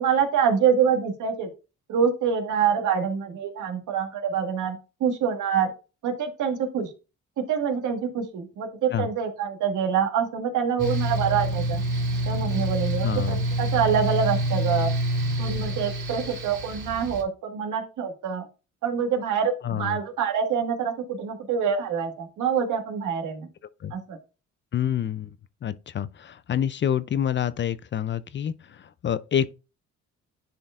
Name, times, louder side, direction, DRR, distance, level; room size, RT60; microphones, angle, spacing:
voice 1, 0.0-1.5 1.9-5.7 6.0-6.9 7.4-11.8 12.3-14.9 15.4-18.5 18.8-23.5 23.9-24.2, right 7 dB, 80° right, 1.7 m, -26 dB
Mechanical fan, 10.8-17.2, right 1 dB, 35° right, 3.6 m, -27 dB
voice 2, 13.0-13.5 19.6-20.0 23.8-23.9 24.7-25.3 25.6-28.5 29.0-29.5, left 9 dB, 40° left, 0.4 m, -27 dB
10.0 x 4.4 x 2.5 m
cardioid pair, 90°, 30 cm